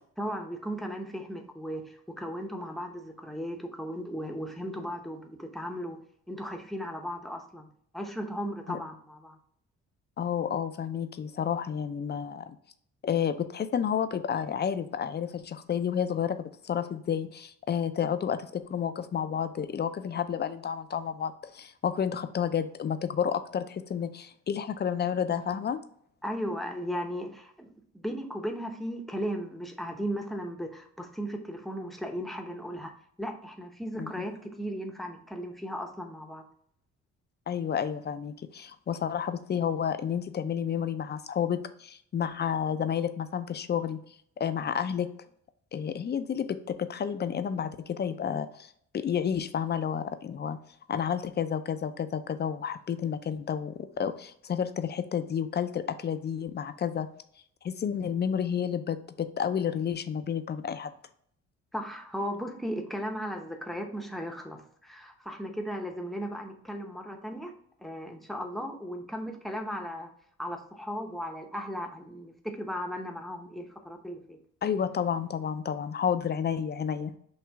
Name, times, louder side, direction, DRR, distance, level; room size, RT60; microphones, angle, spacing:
voice 1, 0.2-6.0 6.3-7.7 7.9-9.4 26.2-32.9 33.2-36.4 61.7-67.5 67.8-70.1 70.4-74.4, equal, ahead, 4 dB, 0.8 m, -36 dB
voice 2, 10.2-12.6 13.0-25.8 34.0-34.3 37.5-44.0 44.4-45.1 45.7-50.6 50.9-57.1 57.6-60.9 74.6-77.1, left 8 dB, 35° left, 11 dB, 0.5 m, -30 dB
6.1 x 2.4 x 3.5 m, 0.66 s
cardioid pair, 90°, 30 cm